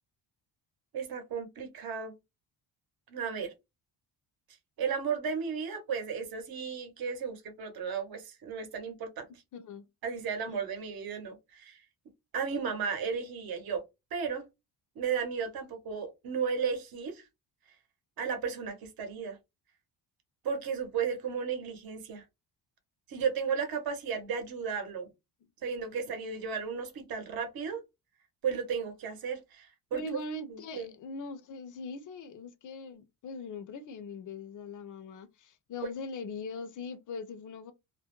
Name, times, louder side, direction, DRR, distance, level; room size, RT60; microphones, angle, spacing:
voice 1, 0.9-2.1 3.1-3.5 4.8-9.3 10.0-11.8 12.3-13.8 14.1-14.4 15.0-17.2 18.2-19.4 20.4-22.2 23.1-25.1 25.6-27.8 28.4-30.0 30.5-30.9, right 6 dB, 55° right, 0.8 m, -34 dB
voice 2, 9.5-9.9 10.5-10.6 29.9-37.7, left 3 dB, 50° left, 0.5 m, -41 dB
2.2 x 2.0 x 2.9 m
cardioid pair, 130°, 42 cm